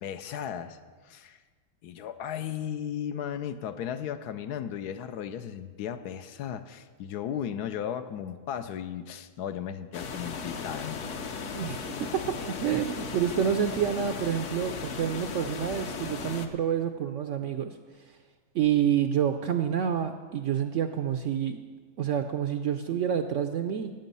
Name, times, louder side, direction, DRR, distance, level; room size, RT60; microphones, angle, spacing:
voice 1, 0.0-0.8 1.1-1.4 1.8-11.0, left 9 dB, 75° left, 10 dB, 1.2 m, -35 dB
sound 1, 9.9-16.5, left 5 dB, 55° left, 1.0 m, -36 dB
voice 2, 11.5-17.8 18.5-21.6 22.0-23.9, right 9 dB, 70° right, 8 dB, 0.7 m, -28 dB
14.5 x 8.9 x 5.4 m, 1.5 s
omnidirectional pair, 1.7 m